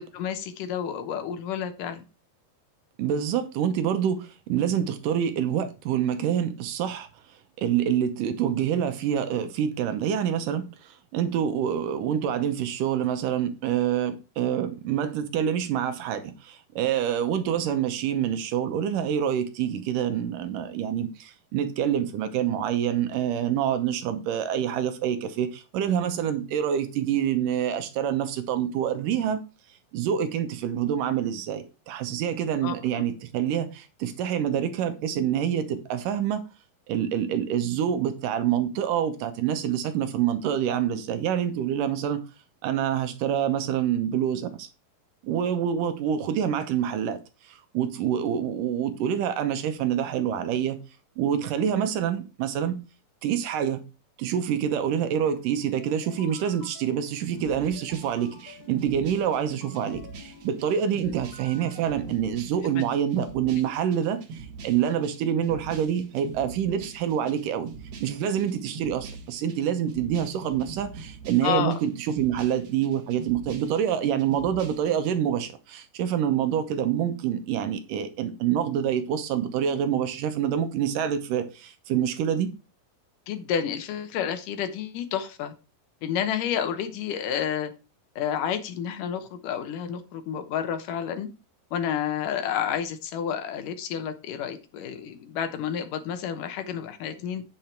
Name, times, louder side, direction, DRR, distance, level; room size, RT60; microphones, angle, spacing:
voice 1, 0.0-2.0 32.6-32.7 71.4-71.8 83.3-85.5 86.0-87.7 88.2-91.3 91.7-97.4, left 8 dB, 75° left, 2.5 m, -30 dB
voice 2, 3.0-7.1 7.6-29.4 29.9-36.5 36.9-42.2 42.6-44.7 45.2-47.2 47.4-50.8 51.2-52.8 53.2-53.8 54.2-67.7 68.0-82.5, right 9 dB, 75° right, 2.5 m, -26 dB
sound 1, 55.3-62.2, left 5 dB, 35° left, 3.7 m, -50 dB
sound 2, 57.4-75.1, right 5 dB, 55° right, 2.3 m, -43 dB
9.1 x 6.7 x 4.5 m
omnidirectional pair, 4.0 m